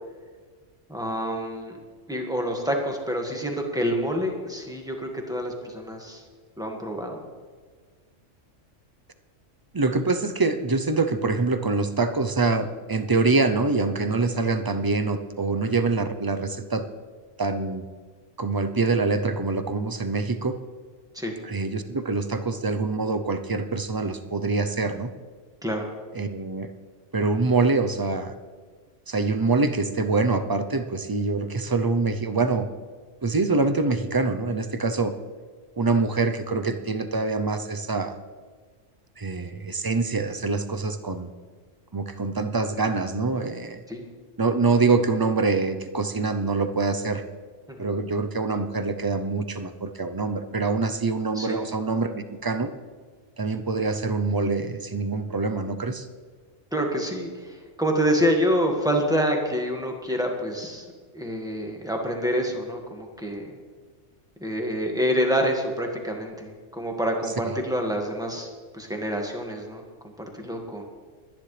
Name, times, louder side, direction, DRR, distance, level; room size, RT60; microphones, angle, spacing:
voice 1, 0.9-1.8 2.1-6.2 6.6-7.2 21.1-21.3 25.6-25.9 43.9-44.0 47.7-47.9 51.3-51.6 56.7-60.9 61.1-63.5 64.4-69.8 70.3-70.8, equal, 5° right, 1 dB, 1.8 m, -27 dB
voice 2, 9.7-16.8 17.4-17.8 18.4-20.6 21.4-25.1 26.1-26.7 27.1-28.3 29.1-32.7 33.2-35.1 35.8-38.2 39.2-41.3 41.9-43.8 44.4-47.2 47.8-52.7 53.4-56.0, right 3 dB, 30° right, 8 dB, 0.4 m, -25 dB
22.5 x 10.5 x 3.3 m, 1.5 s
omnidirectional pair, 1.3 m